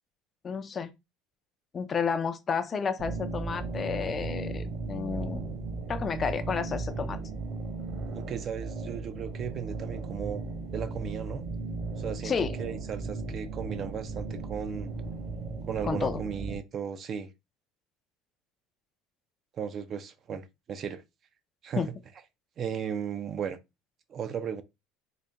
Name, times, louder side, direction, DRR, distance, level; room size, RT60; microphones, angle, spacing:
voice 1, 0.4-0.9 1.7-5.4 5.9-7.2 12.2-12.5 15.8-16.2 21.8-21.9, left 6 dB, 25° left, 0.4 m, -31 dB
sound 1, 3.0-16.5, right 3 dB, 50° right, 1.3 m, -36 dB
voice 2, 8.1-10.4 10.7-11.5 12.0-12.3 12.6-14.9 15.7-17.3 19.6-21.0 21.6-21.8 22.6-23.6 24.1-24.6, right 7 dB, 35° right, 0.5 m, -35 dB
4.0 x 2.1 x 3.4 m
cardioid pair, 140°, 0 cm